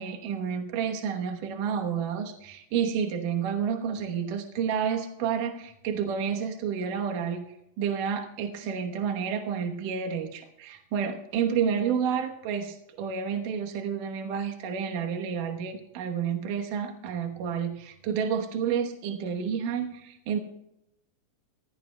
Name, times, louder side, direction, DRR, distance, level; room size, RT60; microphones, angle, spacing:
voice 1, 0.0-7.5 7.8-20.4, right 7 dB, 75° right, 3 dB, 2.7 m, -30 dB
22.0 x 16.5 x 2.2 m, 0.85 s
omnidirectional pair, 3.9 m